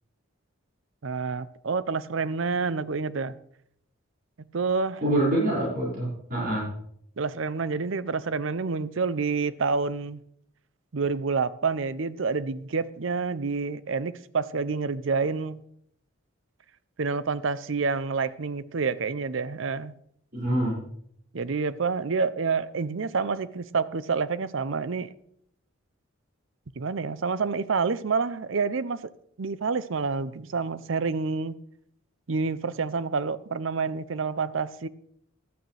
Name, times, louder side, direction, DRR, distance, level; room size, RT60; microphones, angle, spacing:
voice 1, 1.0-3.3 4.5-5.0 7.2-10.2 10.9-15.6 17.0-19.9 21.3-25.1 26.8-29.0 29.4-31.5 32.3-34.9, right 4 dB, 65° right, 0.6 m, -28 dB
voice 2, 5.0-6.7 20.3-20.8, right 1 dB, 45° right, 6.0 m, -25 dB
15.0 x 12.0 x 3.4 m
head